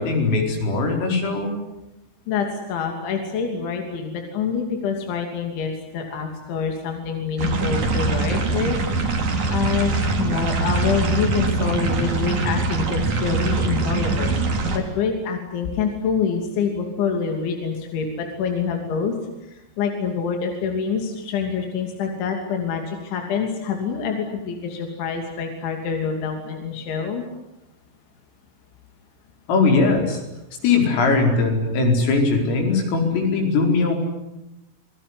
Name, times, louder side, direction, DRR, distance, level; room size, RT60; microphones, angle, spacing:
voice 1, 0.0-1.5 29.5-30.2 30.6-34.0, left 3 dB, 80° left, 3 dB, 7.4 m, -20 dB
voice 2, 2.3-8.8 9.5-9.9 10.2-19.2 19.4-27.3, left 6 dB, 65° left, 3 dB, 5.1 m, -26 dB
sound 1, 7.4-14.8, right 3 dB, 40° right, 4.1 m, -23 dB
27.5 x 21.0 x 9.8 m, 0.94 s
omnidirectional pair, 5.8 m